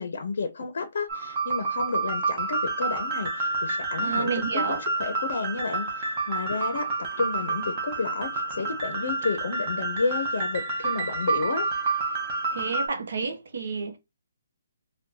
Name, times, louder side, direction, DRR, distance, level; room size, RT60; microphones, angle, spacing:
voice 1, 0.0-11.7, left 4 dB, 55° left, 0.6 m, -31 dB
sound 1, 1.1-12.9, right 3 dB, 20° right, 0.7 m, -29 dB
voice 2, 4.0-4.8 12.5-14.0, right 4 dB, 60° right, 0.7 m, -30 dB
2.7 x 2.2 x 3.7 m
hypercardioid pair, 175°, 0 cm